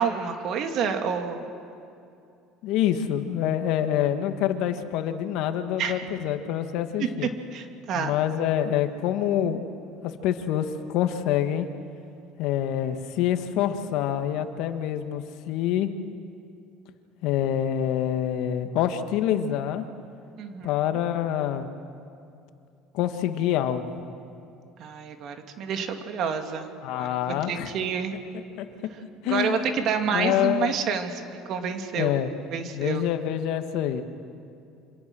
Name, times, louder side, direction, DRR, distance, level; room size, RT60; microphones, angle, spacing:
voice 1, 0.0-1.5 5.8-6.1 7.0-7.1 7.5-8.1 20.4-20.8 24.8-27.2 27.5-28.1 29.3-32.2 32.5-33.0, right 6 dB, 60° right, 5 dB, 2.7 m, -29 dB
voice 2, 2.6-7.3 8.0-9.6 10.0-11.7 12.4-15.9 17.2-19.8 20.6-21.7 22.9-24.0 26.8-27.7 28.6-28.7 29.2-29.6 30.1-30.7 32.0-32.3 32.7-34.0, left 10 dB, 70° left, 8 dB, 1.8 m, -26 dB
27.5 x 25.5 x 6.4 m, 2.6 s
hypercardioid pair, 80°, 0 cm